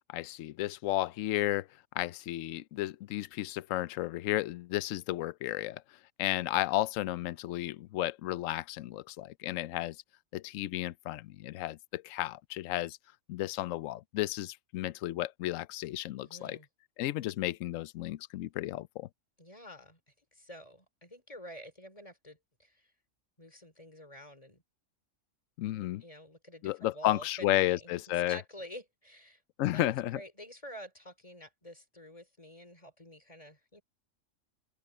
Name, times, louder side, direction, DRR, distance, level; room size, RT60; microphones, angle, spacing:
voice 1, 0.1-1.7 1.9-5.8 6.2-10.0 10.3-13.0 13.3-16.6 17.0-19.1 25.6-26.0 26.6-28.4 29.6-30.2, left 15 dB, 75° left, 0.9 m, -33 dB
voice 2, 16.2-16.7 19.4-22.9 23.4-24.6 25.7-33.8, equal, 25° left, 3.3 m, -49 dB
open air
omnidirectional pair, 1.4 m